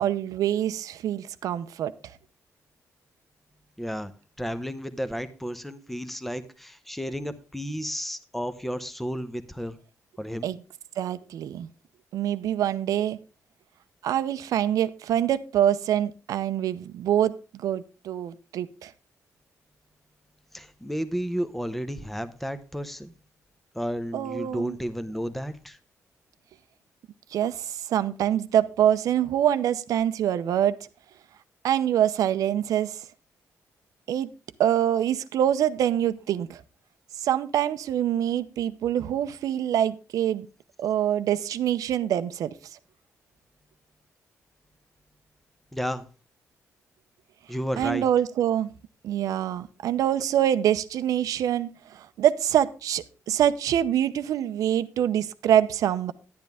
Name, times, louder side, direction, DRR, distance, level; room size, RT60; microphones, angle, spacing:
voice 1, 0.0-1.9 10.4-10.6 11.0-11.7 12.1-13.2 14.0-18.9 24.1-24.8 27.3-30.8 31.6-33.0 34.1-34.3 34.6-36.6 37.2-40.5 40.8-42.5 47.8-48.7 49.0-56.1, right 10 dB, 85° right, 13 dB, 0.7 m, -25 dB
voice 2, 3.8-4.1 4.4-9.8 10.2-10.5 20.5-23.1 23.7-25.8 45.7-46.1 47.5-48.0, equal, 5° left, 11 dB, 0.8 m, -32 dB
10.5 x 10.5 x 3.5 m, 0.33 s
cardioid pair, 125°, 6 cm